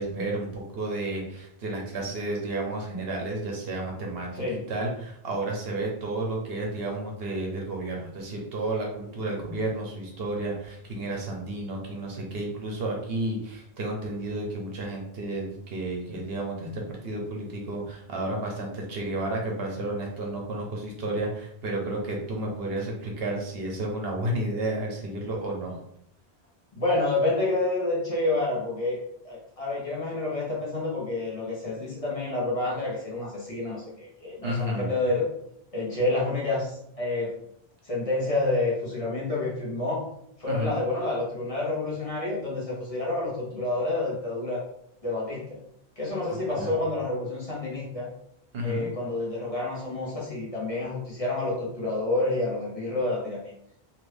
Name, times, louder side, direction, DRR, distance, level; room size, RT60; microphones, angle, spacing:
voice 1, 0.0-4.3 4.7-25.8 34.4-34.9 40.5-40.7 46.3-46.8 48.5-48.8, right 2 dB, 65° right, 0 dB, 0.9 m, -32 dB
voice 2, 26.7-35.3 35.7-37.3 37.8-40.0 40.4-44.6 45.0-45.6 46.0-48.1 48.6-53.4, left 2 dB, 35° left, -5 dB, 1.0 m, -28 dB
2.9 x 2.5 x 3.3 m, 0.73 s
omnidirectional pair, 1.1 m